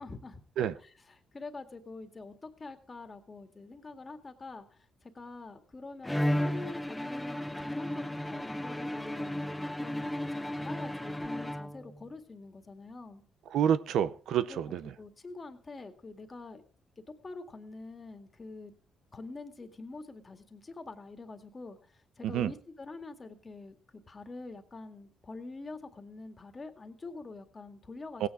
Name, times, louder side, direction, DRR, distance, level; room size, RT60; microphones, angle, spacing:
voice 1, 0.0-0.4 0.8-9.4 9.8-13.2 14.4-14.6 15.0-16.6 17.2-18.7 19.1-28.3, left 3 dB, 30° left, 2.0 m, -46 dB
Bowed string instrument, 6.0-12.1, left 1 dB, 5° left, 0.6 m, -34 dB
voice 2, 13.5-14.9 22.2-22.5 28.2-28.3, right 9 dB, 75° right, 0.7 m, -28 dB
17.0 x 9.3 x 4.8 m
cardioid pair, 90°, 0 cm